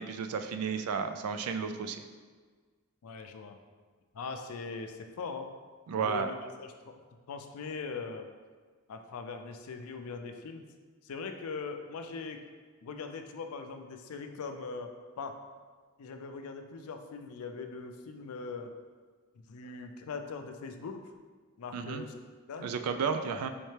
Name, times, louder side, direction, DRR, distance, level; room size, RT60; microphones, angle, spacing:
voice 1, 0.0-2.0 5.9-6.3 21.7-22.0 22.6-23.5, right 6 dB, 85° right, 8 dB, 0.3 m, -32 dB
voice 2, 3.0-3.6 4.1-5.5 6.0-6.9 7.3-8.3 8.9-10.6 11.0-12.4 12.8-14.9 15.2-15.4 16.0-18.7 19.5-21.1 21.6-22.2 22.5-22.7, left 4 dB, 80° left, 6 dB, 0.4 m, -41 dB
4.3 x 3.2 x 3.2 m, 1.5 s
head